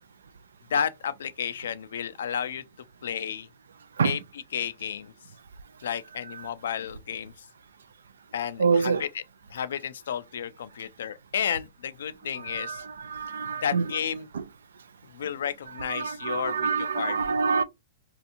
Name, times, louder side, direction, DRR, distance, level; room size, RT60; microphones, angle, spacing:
voice 1, 0.7-2.6 3.0-3.5 4.0-4.2 4.5-5.1 5.8-7.5 8.3-9.2 9.5-12.8 13.6-14.3 15.1-17.2, left 8 dB, 75° left, 0.3 m, -32 dB
voice 2, 8.6-9.0 12.3-13.9 14.3-14.4 15.8-17.6, right 5 dB, 85° right, 0.3 m, -27 dB
2.8 x 2.4 x 2.5 m
hypercardioid pair, 130°, 0 cm